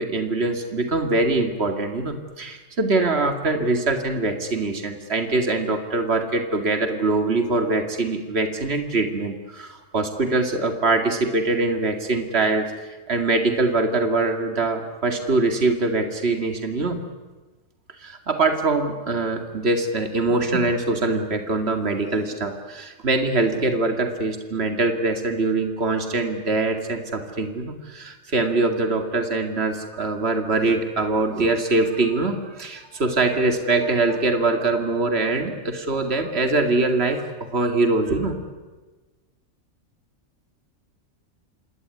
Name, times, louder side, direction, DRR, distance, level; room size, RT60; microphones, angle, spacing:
voice 1, 0.0-12.7 13.1-17.0 18.0-38.4, right 3 dB, 50° right, 5 dB, 2.6 m, -23 dB
27.0 x 20.0 x 9.8 m, 1.3 s
omnidirectional pair, 1.4 m